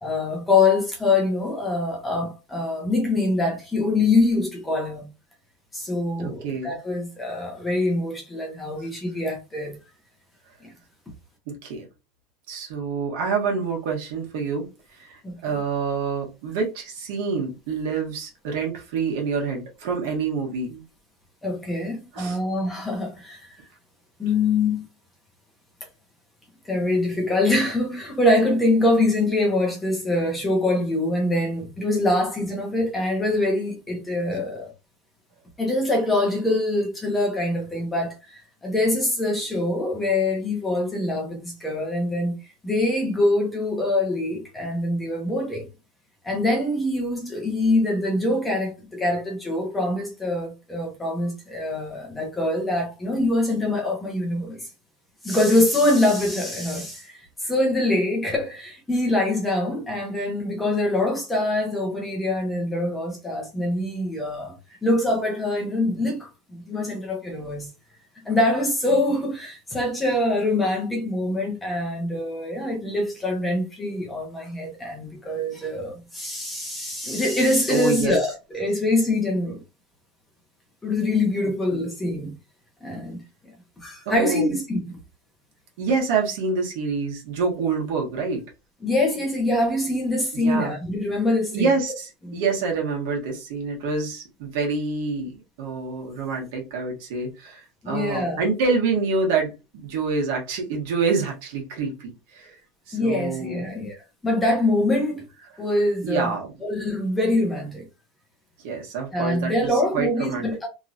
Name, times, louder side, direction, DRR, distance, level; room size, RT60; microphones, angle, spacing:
voice 1, 0.0-5.1 5.7-9.8 15.2-15.6 21.4-23.5 24.2-24.8 26.7-34.7 35.6-42.4 42.6-45.7 46.2-54.7 55.2-64.5 64.8-67.7 68.2-79.6 80.8-82.3 82.8-83.2 83.8-84.8 88.8-91.7 92.3-92.4 97.8-98.4 102.9-103.9 104.2-105.2 105.6-106.3 106.6-107.9 109.1-110.7, left 2 dB, 5° left, 0.8 m, -24 dB
voice 2, 6.2-6.8 11.5-11.9 12.5-20.8 22.1-22.4 77.7-78.1 81.7-81.8 84.0-84.5 85.8-88.4 90.3-90.7 91.5-102.6 102.9-103.7 106.0-106.5 108.6-110.5, right 4 dB, 65° right, 1.2 m, -27 dB
3.0 x 2.7 x 2.5 m
supercardioid pair, 180°, 0 cm